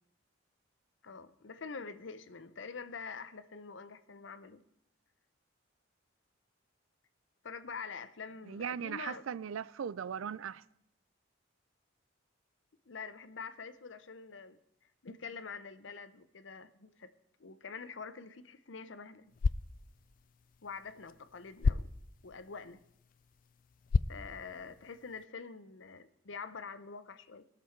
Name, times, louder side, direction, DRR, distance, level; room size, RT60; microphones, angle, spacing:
voice 1, 1.0-4.6 7.4-9.2 12.9-14.6 15.0-17.1 17.4-19.3 20.6-21.9 22.2-22.8 24.1-27.4, left 5 dB, 70° left, 0.7 m, -46 dB
voice 2, 8.5-10.6, right 7 dB, 90° right, 0.4 m, -38 dB
sound 1, 19.2-25.2, left 4 dB, 45° left, 0.3 m, -36 dB
20.0 x 6.9 x 4.6 m
head